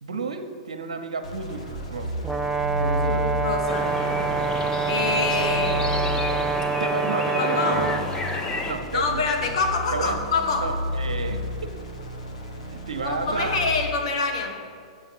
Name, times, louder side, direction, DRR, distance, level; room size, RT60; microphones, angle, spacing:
voice 1, 0.0-2.1 2.8-3.3 6.7-8.0 8.6-9.2 9.9-10.2 10.6-11.7 12.7-13.6, right 4 dB, 90° right, 6 dB, 0.8 m, -31 dB
sound 1, 1.2-6.8 7.7-14.1, left 1 dB, 90° left, 1.5 m, -32 dB
Brass instrument, 2.2-8.1, right 5 dB, 10° right, 0.3 m, -26 dB
voice 2, 3.0-3.9 4.9-5.9 7.4-7.9 8.9-10.7 13.0-14.6, left 4 dB, 65° left, 4 dB, 1.4 m, -26 dB
sound 2, 3.7-8.7, left 3 dB, 20° left, 0.9 m, -31 dB
7.2 x 5.6 x 7.2 m, 2.3 s
hypercardioid pair, 120°, 3 cm